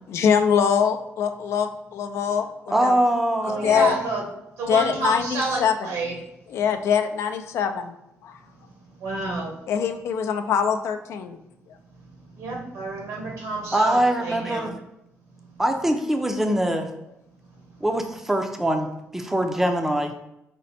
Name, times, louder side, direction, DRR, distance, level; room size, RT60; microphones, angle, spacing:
voice 1, 0.1-2.4 2.8-3.0 3.5-4.0 4.7-5.7 6.5-7.9 8.2-8.4 9.7-11.4, left 7 dB, 70° left, 7 dB, 0.4 m, -23 dB
voice 2, 2.7-3.9 13.7-14.7 15.6-16.9 17.8-20.1, right 1 dB, 5° right, 5 dB, 0.4 m, -23 dB
voice 3, 3.4-4.2 4.6-6.2 8.4-9.6 11.9-14.7 15.3-15.6 17.5-17.8, right 2 dB, 90° right, -1 dB, 1.3 m, -30 dB
5.1 x 2.1 x 4.2 m, 0.85 s
cardioid pair, 135°, 5 cm